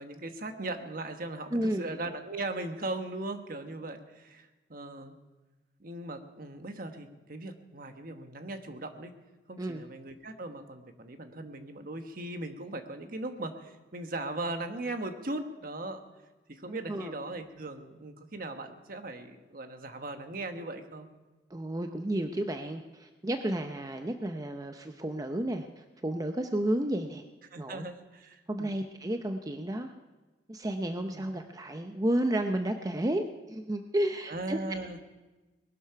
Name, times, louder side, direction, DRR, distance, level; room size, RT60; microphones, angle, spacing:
voice 1, 0.0-5.2 5.8-9.1 9.5-16.0 16.5-21.1 27.5-28.7 31.1-31.3 34.3-35.0, right 2 dB, 55° right, 7 dB, 1.2 m, -38 dB
voice 2, 1.5-1.9 9.6-9.8 16.7-17.1 21.5-27.2 27.6-27.8 28.5-29.9 30.5-34.6, right 1 dB, 20° right, 6 dB, 0.6 m, -32 dB
20.0 x 11.5 x 5.7 m, 1.2 s
head